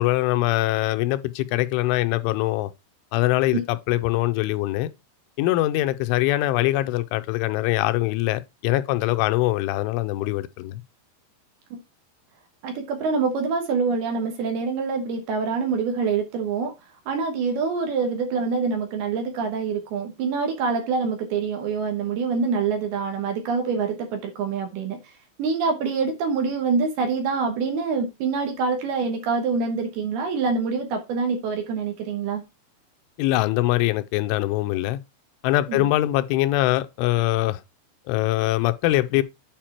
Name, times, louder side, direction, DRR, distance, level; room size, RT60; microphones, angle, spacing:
voice 1, 0.0-2.7 3.1-4.9 5.4-10.8 33.2-35.0 35.4-37.6 38.1-39.2, left 17 dB, 85° left, 2.9 m, -23 dB
voice 2, 12.6-16.7 17.1-25.0 25.4-32.4 35.7-35.9, right 5 dB, 70° right, 2.7 m, -25 dB
8.9 x 4.7 x 4.4 m
omnidirectional pair, 5.6 m